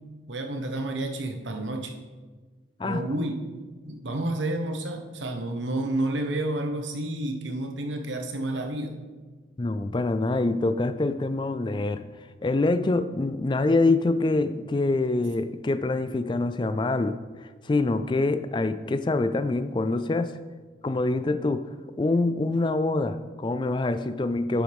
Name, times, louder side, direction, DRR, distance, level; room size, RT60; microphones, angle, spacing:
voice 1, 0.3-1.9 2.8-3.5 3.8-8.9, right 1 dB, 90° right, 4 dB, 1.1 m, -30 dB
voice 2, 9.6-12.0 12.4-20.3 20.8-21.6 22.0-24.6, left 2 dB, 25° left, 11 dB, 0.3 m, -25 dB
10.0 x 7.9 x 3.5 m, 1.4 s
head